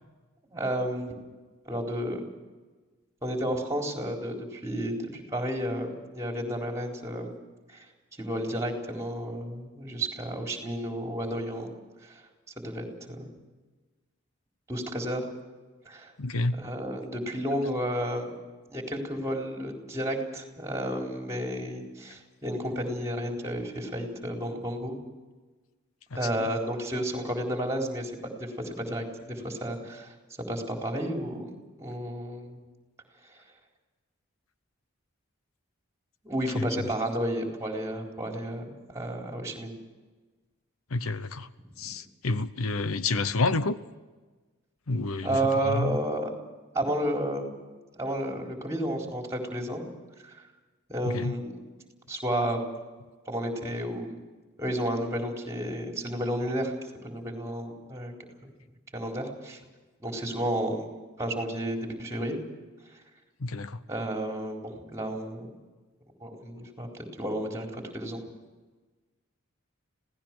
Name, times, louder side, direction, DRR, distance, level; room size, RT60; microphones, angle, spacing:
voice 1, 0.5-1.1 1.7-2.2 3.2-7.3 7.7-7.9 8.2-11.7 12.0-12.2 12.6-13.3 14.7-15.3 15.9-16.1 16.6-18.3 18.7-25.0 26.1-30.1 30.5-31.5 31.8-32.6 36.2-39.7 45.2-46.3 46.7-47.5 48.0-49.8 50.2-50.4 50.9-51.5 52.1-52.6 53.3-54.1 54.6-56.7 57.0-58.1 58.4-58.5 58.9-59.6 60.0-60.9 61.2-62.4 63.9-65.5 66.2-68.2, right 1 dB, 15° right, 1 dB, 4.2 m, -32 dB
voice 2, 16.2-16.6 26.1-26.5 36.6-36.7 40.9-41.5 41.8-43.8 44.9-45.4 45.6-46.0 51.1-51.3 63.4-63.8, left 3 dB, 75° left, 13 dB, 0.9 m, -29 dB
26.0 x 18.0 x 6.2 m, 1.3 s
head